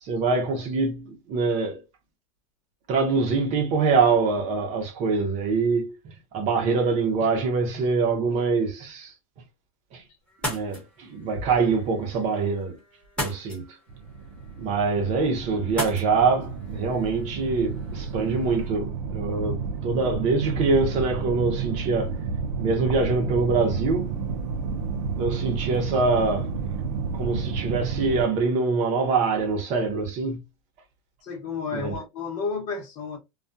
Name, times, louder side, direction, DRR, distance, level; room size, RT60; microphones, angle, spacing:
voice 1, 0.0-1.8 2.9-6.0 6.3-9.1 9.9-10.0 10.4-12.8 13.2-13.6 14.6-22.1 22.6-24.1 25.2-26.6 27.1-30.4 31.7-31.9, right 4 dB, 40° right, 0.8 m, -24 dB
sound 1, 10.3-18.7, left 1 dB, 5° left, 1.0 m, -39 dB
sound 2, 13.9-28.2, right 5 dB, 70° right, 0.6 m, -31 dB
voice 2, 31.2-33.2, left 5 dB, 40° left, 1.0 m, -31 dB
2.4 x 2.2 x 2.5 m
supercardioid pair, 140°, 18 cm